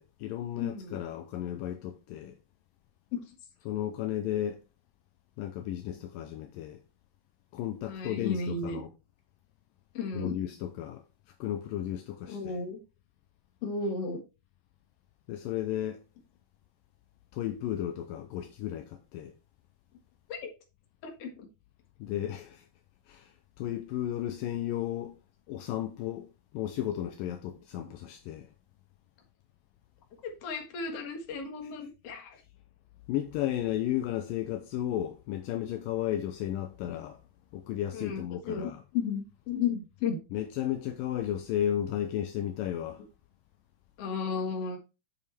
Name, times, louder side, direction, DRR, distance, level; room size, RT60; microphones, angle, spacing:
voice 1, 0.0-2.4 3.7-4.6 5.4-6.8 7.5-8.9 10.1-11.0 11.4-12.6 15.3-16.0 17.3-19.4 22.0-22.7 23.1-25.2 25.5-28.5 33.1-37.2 37.5-38.8 40.3-43.0, left 11 dB, 80° left, 2.2 m, -34 dB
voice 2, 0.6-1.0 3.1-3.2 7.8-8.8 9.9-10.4 12.3-12.8 13.6-14.2 20.3-20.5 21.0-21.5 30.2-32.4 37.9-40.2 44.0-44.8, left 5 dB, 50° left, 2.3 m, -34 dB
8.5 x 6.9 x 3.4 m
omnidirectional pair, 4.4 m